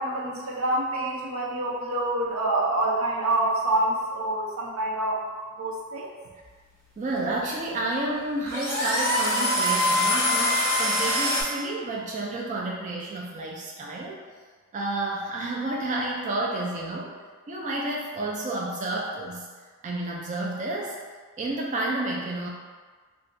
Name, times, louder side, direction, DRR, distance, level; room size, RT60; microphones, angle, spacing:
voice 1, 0.0-5.2 5.6-6.1, right 1 dB, 85° right, -3 dB, 0.6 m, -26 dB
sound 1, 6.5-11.4, left 1 dB, 10° left, 0.9 m, -25 dB
voice 2, 7.0-14.2 14.7-17.1 17.5-19.5 19.8-21.0 21.4-22.5, right 2 dB, 35° right, -2 dB, 0.3 m, -30 dB
2.5 x 2.2 x 3.7 m, 1.5 s
head